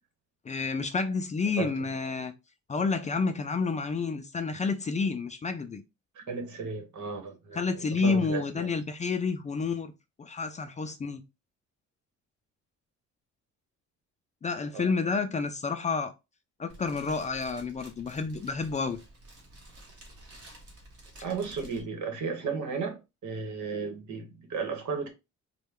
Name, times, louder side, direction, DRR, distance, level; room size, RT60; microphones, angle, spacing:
voice 1, 0.4-2.3 2.7-5.8 7.5-9.9 10.2-11.2 14.4-16.1 16.6-19.0, left 4 dB, 25° left, 0.4 m, -30 dB
voice 2, 6.1-8.7 14.7-14.9 21.2-25.1, right 5 dB, 75° right, 1.3 m, -34 dB
Fire, 16.7-21.8, right 1 dB, 55° right, 1.4 m, -51 dB
4.1 x 2.2 x 3.6 m
cardioid pair, 140°, 29 cm